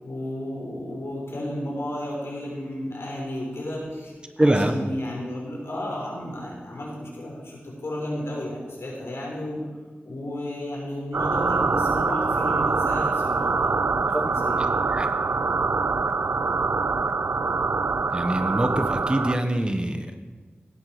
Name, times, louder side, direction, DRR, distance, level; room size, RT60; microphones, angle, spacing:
voice 1, 0.0-9.6 10.0-14.6, left 1 dB, 85° left, -3 dB, 5.4 m, -33 dB
voice 2, 4.4-4.7 14.1-14.3 14.9-15.1 18.1-20.2, right 1 dB, 25° right, 6 dB, 1.4 m, -24 dB
sound 1, 11.1-19.4, right 4 dB, 70° right, 0.5 m, -24 dB
16.5 x 12.0 x 5.2 m, 1.4 s
wide cardioid pair, 70°, 4 cm